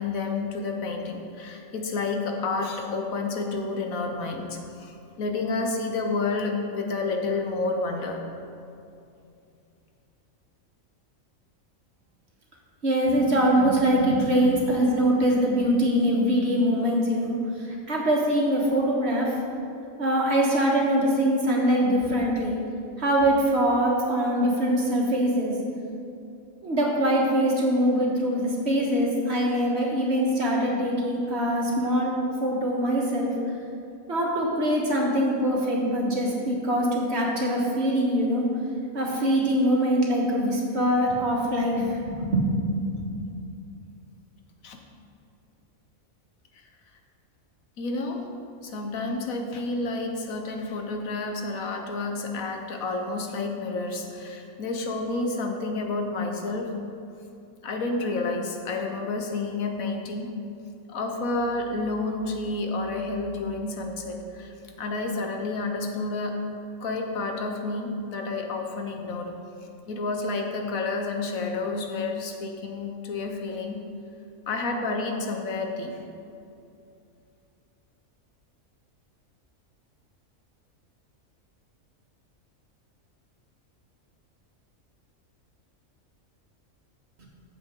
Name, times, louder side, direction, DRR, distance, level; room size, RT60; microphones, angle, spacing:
voice 1, 0.0-8.2 44.6-44.8 47.8-48.3 48.6-56.7 57.6-60.3 60.9-66.4 66.8-69.3 69.9-73.8 74.5-76.0, left 3 dB, 85° left, 3 dB, 1.5 m, -30 dB
voice 2, 12.8-19.3 20.0-22.6 23.0-25.5 26.6-32.1 32.4-33.3 34.1-38.5 38.9-42.5 43.0-43.1 87.2-87.3, equal, 50° right, -3 dB, 2.0 m, -23 dB
14.0 x 7.5 x 3.8 m, 2.6 s
omnidirectional pair, 1.4 m